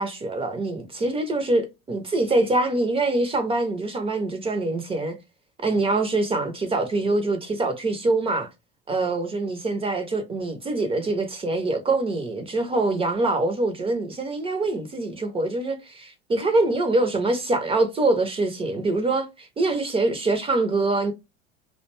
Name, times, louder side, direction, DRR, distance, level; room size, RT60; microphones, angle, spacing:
voice 1, 0.0-5.2 5.6-8.5 8.9-21.1, right 2 dB, 15° right, 0.4 m, -24 dB
2.4 x 2.1 x 3.0 m
figure-of-eight pair, 75°, 38 cm